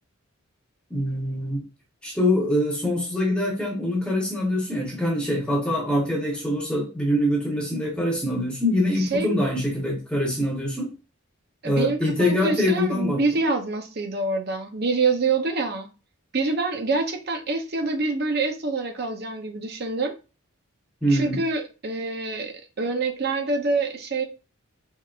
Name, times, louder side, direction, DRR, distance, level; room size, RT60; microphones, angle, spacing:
voice 1, 0.9-1.7 2.0-10.9 11.6-13.2 21.0-21.4, left 1 dB, 5° left, -2 dB, 1.0 m, -24 dB
voice 2, 9.0-9.3 11.6-15.9 16.3-20.1 21.1-24.2, right 3 dB, 50° right, 5 dB, 0.6 m, -26 dB
4.6 x 3.4 x 2.4 m, 0.32 s
head